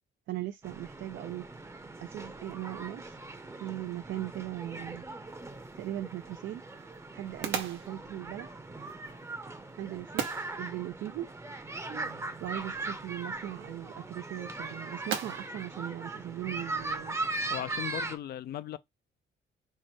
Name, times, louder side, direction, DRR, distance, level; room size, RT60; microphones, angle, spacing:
voice 1, 0.3-1.6 2.0-3.2 3.6-5.0 5.8-6.6 7.1-8.6 9.8-10.3 10.6-11.3 12.4-17.2, right 14 dB, 70° right, 0.4 m, -39 dB
sound 1, 0.6-18.2, right 2 dB, 15° right, 0.6 m, -40 dB
sound 2, 5.3-17.0, right 8 dB, 90° right, 0.9 m, -43 dB
sound 3, 11.9-12.9, right 6 dB, 55° right, 0.8 m, -51 dB
voice 2, 17.5-18.8, left 12 dB, 55° left, 0.4 m, -37 dB
4.5 x 2.1 x 4.3 m
cardioid pair, 90°, 20 cm